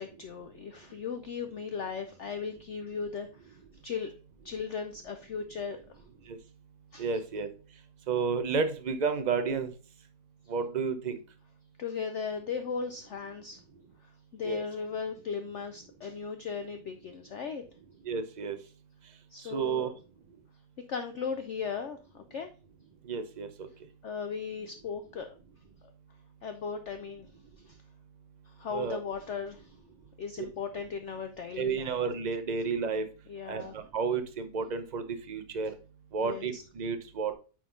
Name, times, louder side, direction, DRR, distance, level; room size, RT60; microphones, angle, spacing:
voice 1, 0.0-4.1 4.4-6.0 6.9-7.1 11.8-13.6 14.0-17.6 19.3-19.9 20.9-22.5 24.0-25.3 26.4-27.3 27.6-27.8 28.4-29.8 30.2-32.0 33.3-33.7 36.2-36.6, left 5 dB, 65° left, 7 dB, 0.7 m, -37 dB
voice 2, 7.0-7.5 8.1-9.7 10.5-11.2 14.4-14.6 18.1-18.6 19.5-19.9 23.1-23.7 28.7-29.0 30.4-30.5 31.6-33.0 33.5-35.7 36.1-37.3, right 5 dB, 45° right, 9 dB, 0.5 m, -31 dB
9.1 x 3.9 x 3.8 m, 0.35 s
omnidirectional pair, 1.8 m